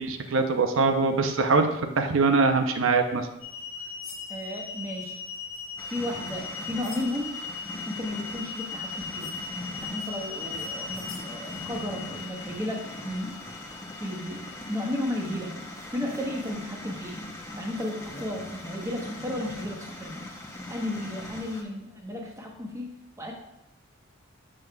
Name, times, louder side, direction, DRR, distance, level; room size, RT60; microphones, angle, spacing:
voice 1, 0.0-3.3, right 4 dB, 75° right, 6 dB, 0.6 m, -23 dB
sound 1, 3.4-15.3 16.1-16.2 17.1-17.2 18.0-18.2 20.9-21.0, left 5 dB, 85° left, 1.4 m, -39 dB
voice 2, 4.3-5.2 5.9-7.3 7.9-9.3 9.8-13.4 14.0-14.4 14.7-15.5 15.9-17.1 17.6-20.2 20.7-22.9 23.2-23.3, left 1 dB, 15° right, -1 dB, 0.9 m, -33 dB
sound 2, 5.8-21.6, left 1 dB, 15° left, 0.7 m, -40 dB
7.4 x 6.2 x 2.3 m, 0.86 s
head